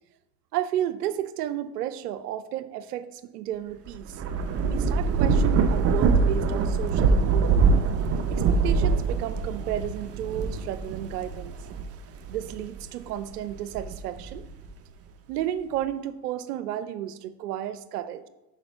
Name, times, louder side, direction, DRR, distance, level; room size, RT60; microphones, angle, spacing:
voice 1, 0.5-4.2 4.7-7.7 8.3-11.6 12.3-14.5 15.3-18.3, right 11 dB, 80° right, 12 dB, 0.6 m, -32 dB
Thunder / Rain, 3.9-12.8 13.3-14.7, right 4 dB, 30° right, 0.6 m, -24 dB
5.1 x 4.0 x 5.2 m, 0.95 s
hypercardioid pair, 85°, 47 cm